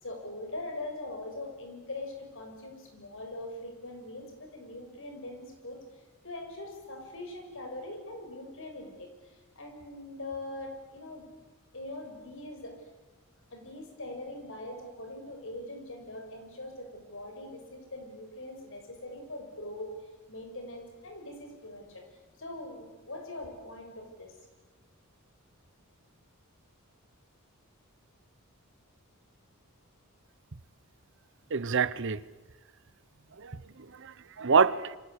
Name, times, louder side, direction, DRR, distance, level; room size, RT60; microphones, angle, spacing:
voice 1, 0.0-11.3 11.7-12.8 13.5-19.9 20.3-22.0 22.4-24.3, left 2 dB, 65° left, 4 dB, 6.8 m, -42 dB
voice 2, 31.5-32.2 33.4-35.0, right 5 dB, 60° right, 17 dB, 0.9 m, -27 dB
28.5 x 25.5 x 8.3 m, 1.1 s
head